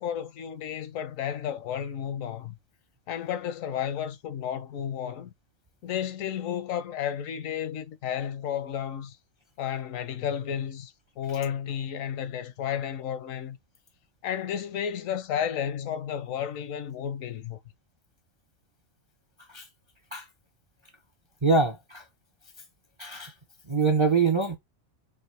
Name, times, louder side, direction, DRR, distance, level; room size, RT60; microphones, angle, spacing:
voice 1, 0.0-2.6 3.1-5.3 5.8-9.2 9.6-13.6 14.2-17.6, left 9 dB, 80° left, 1.1 m, -32 dB
voice 2, 21.4-22.0 23.0-23.3 23.7-24.6, right 4 dB, 35° right, 0.5 m, -24 dB
5.5 x 2.2 x 3.2 m
omnidirectional pair, 1.4 m